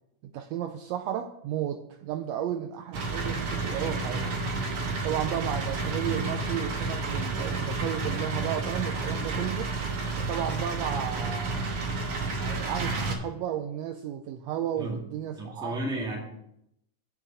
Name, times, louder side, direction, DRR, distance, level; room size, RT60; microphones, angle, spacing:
voice 1, 0.2-4.3 5.0-9.7 10.2-11.9 12.4-15.8, right 10 dB, 85° right, 7 dB, 1.5 m, -33 dB
sound 1, 2.9-13.1, right 3 dB, 60° right, 2.0 m, -31 dB
voice 2, 15.4-16.2, right 1 dB, ahead, -1 dB, 1.3 m, -33 dB
7.3 x 6.2 x 6.8 m, 0.78 s
omnidirectional pair, 3.5 m